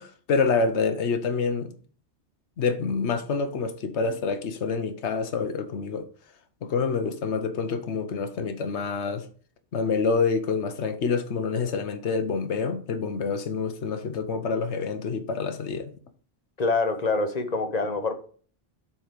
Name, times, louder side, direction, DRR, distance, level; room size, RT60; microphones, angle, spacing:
voice 1, 0.0-1.7 2.6-6.1 6.6-9.3 9.7-15.9, left 4 dB, 75° left, 1.2 m, -27 dB
voice 2, 16.6-18.1, left 3 dB, 40° left, 0.9 m, -25 dB
7.4 x 4.4 x 5.0 m
omnidirectional pair, 1.2 m